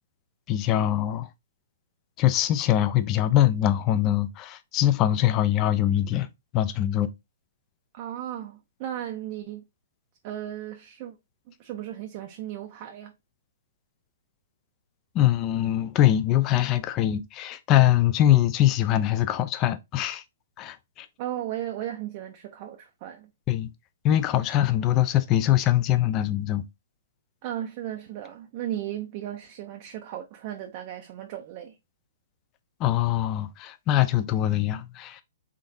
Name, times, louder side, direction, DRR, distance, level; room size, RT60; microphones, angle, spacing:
voice 1, 0.5-1.3 2.2-6.3 6.5-7.1 15.1-20.2 20.6-21.1 23.5-23.7 24.0-26.6 32.8-35.2, left 12 dB, 30° left, 0.4 m, -23 dB
voice 2, 7.9-9.7 10.2-11.2 11.6-13.1 21.2-23.3 27.4-31.7, right 12 dB, 40° right, 0.5 m, -35 dB
3.7 x 3.5 x 2.6 m
figure-of-eight pair, 120°, 0 cm